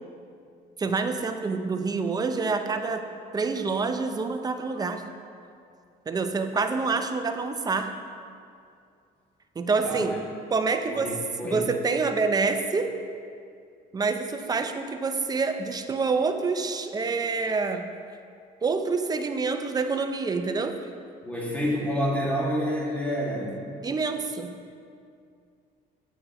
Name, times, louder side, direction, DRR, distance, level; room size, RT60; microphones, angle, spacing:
voice 1, 0.8-3.0 3.3-5.0 6.1-7.9 9.6-10.2 10.5-11.1 11.4-12.9 13.9-17.9 18.6-20.8 23.8-24.5, right 4 dB, 25° right, 7 dB, 0.5 m, -27 dB
voice 2, 10.9-11.7 21.2-23.6, equal, 10° left, -5 dB, 2.1 m, -28 dB
9.2 x 7.5 x 3.0 m, 2.4 s
cardioid pair, 110°, 17 cm